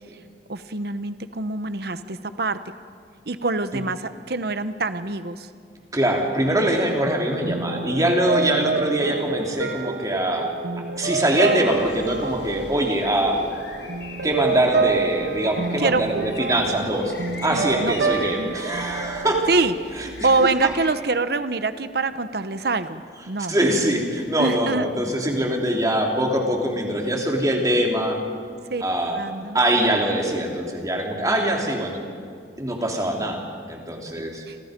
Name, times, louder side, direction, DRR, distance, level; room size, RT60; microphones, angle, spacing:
voice 1, 0.5-2.6 3.3-5.5 15.8-16.0 16.7-16.9 17.5-18.0 18.4-18.5 19.5-23.6 24.4-24.9 28.7-28.8 29.2-29.6 34.5-34.6, right 3 dB, 60° right, 11 dB, 1.0 m, -25 dB
voice 2, 5.9-10.5 11.0-13.4 14.2-17.1 17.4-19.4 20.0-20.1 23.5-28.2 28.8-29.2 29.5-32.0 32.6-33.4 33.7-34.4, right 1 dB, 20° right, 0 dB, 3.5 m, -23 dB
sound 1, 7.3-19.5, right 4 dB, 75° right, 1.5 m, -28 dB
sound 2, 11.7-20.9, left 2 dB, 75° left, 5.0 m, -41 dB
28.5 x 28.0 x 5.3 m, 2.2 s
head